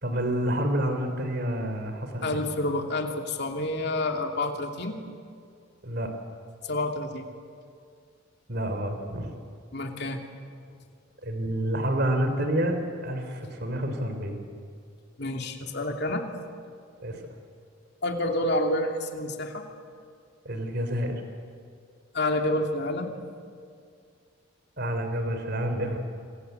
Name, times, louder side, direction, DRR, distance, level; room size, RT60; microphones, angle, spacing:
voice 1, 0.0-2.4 5.8-6.1 8.5-9.3 11.2-14.4 17.0-17.1 20.4-21.2 24.8-26.0, right 1 dB, 50° right, 6 dB, 3.4 m, -28 dB
voice 2, 2.2-5.0 6.6-7.3 9.7-10.2 15.2-16.2 18.0-19.6 22.1-23.1, left 1 dB, 50° left, 3 dB, 2.8 m, -28 dB
27.0 x 26.5 x 8.1 m, 2.2 s
head